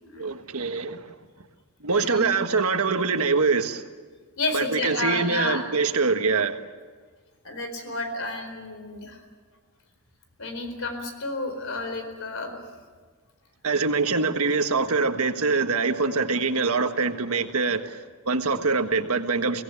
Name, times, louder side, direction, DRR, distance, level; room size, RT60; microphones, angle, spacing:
voice 1, 0.2-1.1 1.8-3.8 4.5-6.6 13.6-19.6, right 4 dB, 75° right, 7 dB, 1.5 m, -24 dB
voice 2, 1.9-2.3 4.4-5.7 7.4-9.2 10.4-12.5, left 2 dB, 65° left, 6 dB, 4.4 m, -31 dB
24.0 x 17.5 x 9.8 m, 1.5 s
head